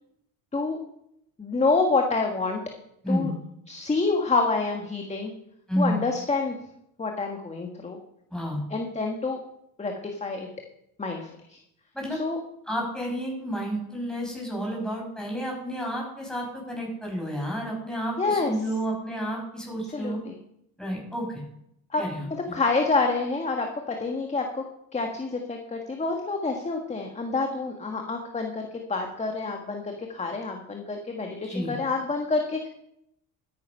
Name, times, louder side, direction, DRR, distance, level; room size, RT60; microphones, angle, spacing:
voice 1, 1.4-2.6 3.1-3.3 3.7-5.3 5.8-6.6 7.0-8.0 8.7-9.4 9.8-10.5 11.0-11.6 12.1-12.4 18.2-18.5 19.9-20.4 21.9-22.0 22.3-24.6 24.9-32.7, left 3 dB, 20° left, 3 dB, 1.7 m, -27 dB
voice 2, 3.0-3.3 5.7-6.0 8.3-8.6 11.9-12.2 12.7-20.2 20.8-21.4 22.0-22.6 31.4-31.8, equal, ahead, -2 dB, 6.8 m, -30 dB
13.5 x 10.0 x 5.6 m, 0.78 s
cardioid pair, 110°, 35 cm